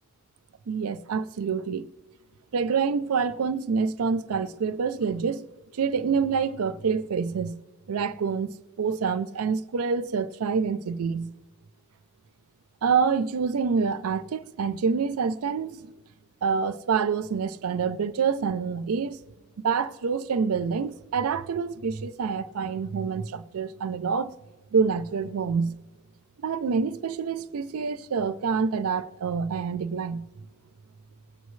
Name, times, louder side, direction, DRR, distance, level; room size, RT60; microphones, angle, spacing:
voice 1, 0.7-1.9 2.5-5.5 5.8-7.6 7.9-8.5 8.8-11.3 12.8-15.9 16.4-19.2 19.6-24.3 24.7-25.8 26.4-30.3, right 5 dB, 85° right, 0.5 m, -27 dB
19.5 x 8.2 x 3.1 m
head